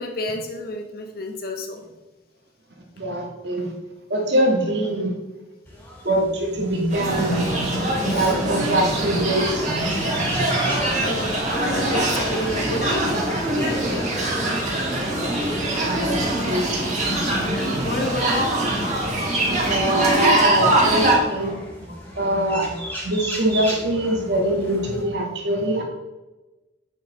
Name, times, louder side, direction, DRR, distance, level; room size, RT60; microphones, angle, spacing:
voice 1, 0.0-1.8 8.1-8.3 11.0-14.1 17.4-18.5 18.9-19.6 21.9-22.0, left 1 dB, 55° left, 3 dB, 1.2 m, -31 dB
voice 2, 3.0-3.7 4.1-5.2 6.0-7.4 8.1-9.8 15.7-16.2 16.5-16.8 17.3-17.4 19.6-21.6 22.2-22.8 23.0-25.8, right 1 dB, 65° right, 0 dB, 1.7 m, -23 dB
sound 1, 5.7-25.0, equal, 10° left, 1.8 m, -37 dB
sound 2, 6.9-21.2, right 1 dB, 40° right, 2.3 m, -23 dB
8.6 x 5.8 x 4.0 m, 1.1 s
head